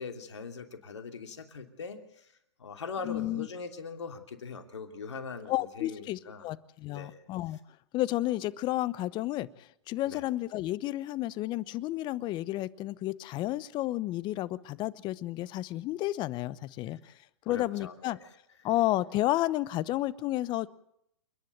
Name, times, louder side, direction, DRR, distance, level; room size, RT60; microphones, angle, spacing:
voice 1, 0.0-2.3 2.6-6.5 6.9-7.2 10.1-10.2 17.5-18.2, left 5 dB, 80° left, 5 dB, 3.0 m, -41 dB
voice 2, 3.0-3.5 5.5-7.6 7.9-17.0 17.5-18.2 18.6-20.7, left 16 dB, 30° left, 18 dB, 0.9 m, -31 dB
29.0 x 10.5 x 9.3 m, 0.78 s
hypercardioid pair, 120°, 15 cm